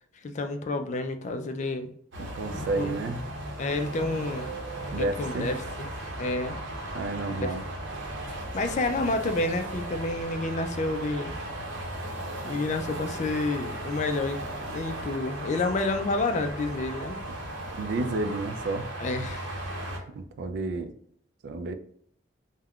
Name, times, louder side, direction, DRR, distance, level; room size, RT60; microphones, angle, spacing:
voice 1, 0.2-1.9 2.5-3.0 3.6-4.5 4.9-5.9 6.2-6.5 7.3-7.5 8.5-11.3 12.4-17.2 19.0-19.6, left 2 dB, 40° left, 7 dB, 0.3 m, -29 dB
sound 1, 2.1-20.0, right 1 dB, 80° right, 0.8 m, -36 dB
voice 2, 2.2-3.2 4.9-5.5 6.9-7.6 17.8-18.9 20.1-20.9 21.4-21.8, right 2 dB, 65° right, 9 dB, 0.3 m, -31 dB
3.5 x 2.2 x 2.3 m, 0.65 s
head